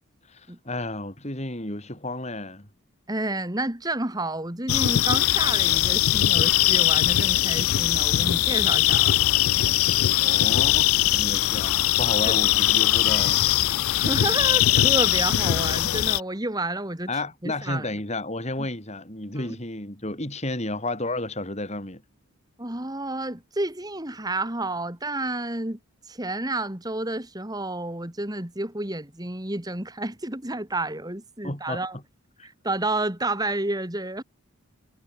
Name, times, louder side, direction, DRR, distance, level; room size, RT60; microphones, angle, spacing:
voice 1, 0.3-2.7 10.2-13.5 17.1-22.0 31.4-31.8, left 2 dB, 30° left, 4.3 m, -32 dB
voice 2, 3.1-9.4 12.2-12.4 14.0-17.1 17.4-17.9 19.4-19.6 22.6-25.8 26.0-32.0 32.4-34.2, right 2 dB, 20° right, 2.2 m, -30 dB
sound 1, 4.7-16.2, left 14 dB, 80° left, 0.4 m, -21 dB
head